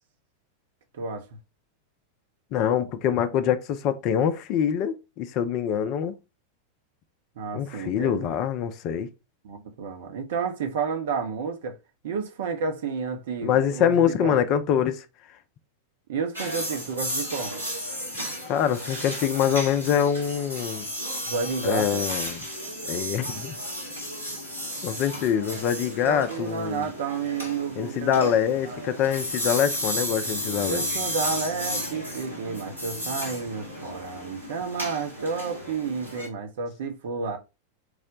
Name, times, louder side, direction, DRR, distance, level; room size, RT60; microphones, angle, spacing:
voice 1, 0.9-1.3 7.4-8.4 9.4-11.8 12.0-14.4 16.1-17.5 21.3-22.1 25.9-28.3 28.6-28.8 30.7-37.4, right 5 dB, 55° right, 0.7 m, -31 dB
voice 2, 2.5-6.2 7.5-9.1 13.4-15.1 18.5-20.9 21.6-22.4 22.9-23.5 24.8-26.9 27.8-30.8, left 9 dB, 40° left, 0.4 m, -24 dB
sound 1, 16.3-36.3, equal, 90° right, 1.5 m, -33 dB
4.7 x 2.1 x 3.8 m
figure-of-eight pair, 90°, 0 cm